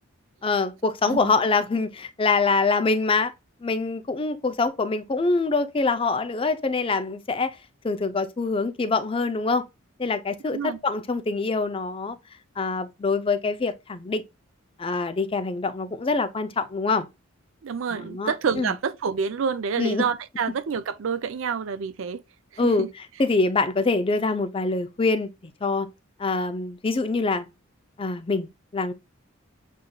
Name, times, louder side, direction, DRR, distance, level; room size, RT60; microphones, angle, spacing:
voice 1, 0.4-3.3 3.6-7.5 7.8-9.6 10.0-12.2 12.6-14.2 14.8-17.1 17.9-18.7 19.8-20.0 22.6-22.9 23.2-25.3 25.6-25.9 26.2-27.5 28.0-28.9, left 3 dB, 25° left, 0.4 m, -25 dB
voice 2, 17.6-22.2 22.8-22.9, right 6 dB, 70° right, 0.4 m, -28 dB
7.4 x 2.6 x 2.2 m
head